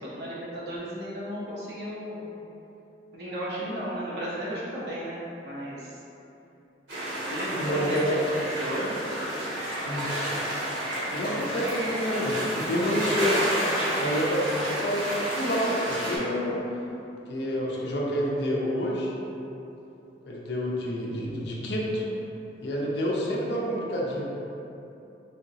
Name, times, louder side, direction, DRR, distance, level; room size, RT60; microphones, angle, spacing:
voice 1, 0.1-2.3 3.1-6.0 7.3-9.0, equal, 65° right, -7 dB, 0.8 m, -34 dB
sound 1, 6.9-16.2, right 1 dB, 85° right, 1.3 m, -30 dB
voice 2, 7.5-8.2 9.8-10.1 11.1-13.5 14.0-16.6 17.3-19.1 20.2-22.0 22.6-24.3, equal, 65° left, -3 dB, 0.5 m, -28 dB
3.3 x 2.8 x 2.7 m, 2.9 s
head